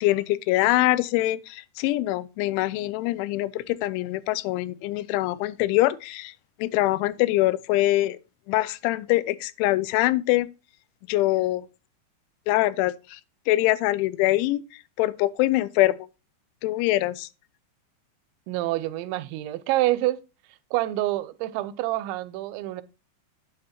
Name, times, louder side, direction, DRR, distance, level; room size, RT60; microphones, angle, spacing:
voice 1, 0.0-6.3 6.6-8.2 8.5-10.5 11.1-11.7 12.5-13.2 13.5-14.6 15.0-16.0 16.6-17.3, left 17 dB, 85° left, 3.0 m, -24 dB
voice 2, 18.5-20.2 20.7-22.8, right 16 dB, 85° right, 2.9 m, -27 dB
8.9 x 8.8 x 2.8 m
omnidirectional pair, 5.4 m